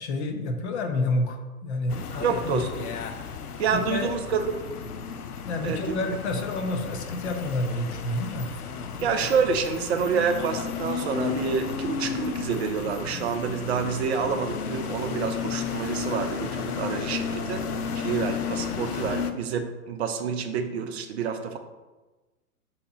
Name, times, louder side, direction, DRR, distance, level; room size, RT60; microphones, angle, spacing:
voice 1, 0.0-2.7 3.7-4.1 5.4-8.5, left 2 dB, 50° left, 5 dB, 0.7 m, -29 dB
sound 1, 1.9-19.3, left 6 dB, 85° left, 0.5 m, -33 dB
voice 2, 2.2-2.9 3.6-4.5 5.6-6.0 9.0-17.6 17.9-21.6, right 6 dB, 45° right, 6 dB, 0.6 m, -28 dB
6.5 x 2.9 x 2.8 m, 1.2 s
figure-of-eight pair, 115°, 45 cm